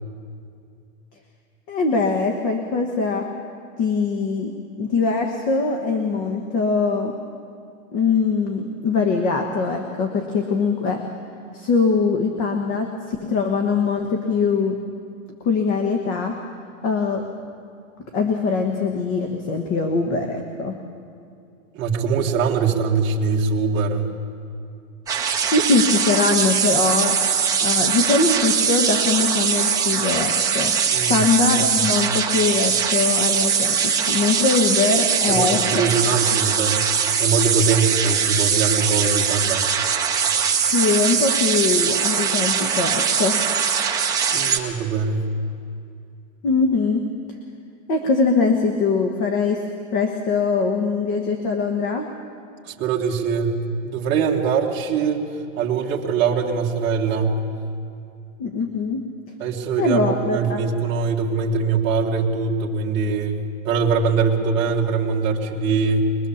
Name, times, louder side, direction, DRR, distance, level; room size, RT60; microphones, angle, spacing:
voice 1, 1.7-3.3 3.8-7.1 7.9-11.0 11.5-14.8 15.4-16.4 16.8-17.2 18.1-20.8 25.4-27.2 27.6-30.7 31.1-35.9 40.7-43.4 46.4-47.0 47.9-49.6 49.9-52.1 58.4-59.0 59.8-60.6, left 4 dB, 30° left, 4 dB, 1.4 m, -22 dB
voice 2, 21.7-24.1 30.9-31.3 31.8-31.9 35.3-36.8 37.2-39.6 44.3-45.3 52.7-55.2 55.6-57.4 59.4-63.4 63.6-66.1, right 5 dB, 25° right, -1 dB, 2.1 m, -22 dB
sound 1, 25.1-44.6, right 7 dB, 10° right, 1.1 m, -21 dB
22.5 x 22.0 x 7.2 m, 2.5 s
supercardioid pair, 165°, 40 cm